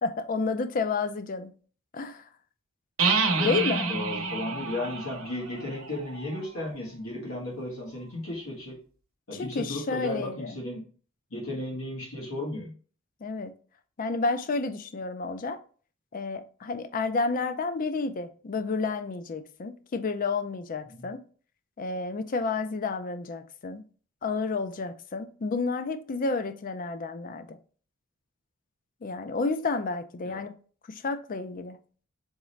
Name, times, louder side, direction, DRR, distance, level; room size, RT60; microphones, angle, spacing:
voice 1, 0.0-1.5 1.9-2.2 3.4-3.9 9.4-10.5 13.2-13.5 14.0-15.6 16.1-21.2 21.8-23.8 24.2-27.6 29.0-30.6 30.9-31.8, left 4 dB, 40° left, 0.4 m, -30 dB
sound 1, 3.0-6.6, right 4 dB, 80° right, 0.8 m, -29 dB
voice 2, 3.3-8.8 9.3-10.8 11.3-12.7 20.9-21.1 30.2-30.4, left 1 dB, 90° left, 1.5 m, -35 dB
4.0 x 3.6 x 3.1 m
head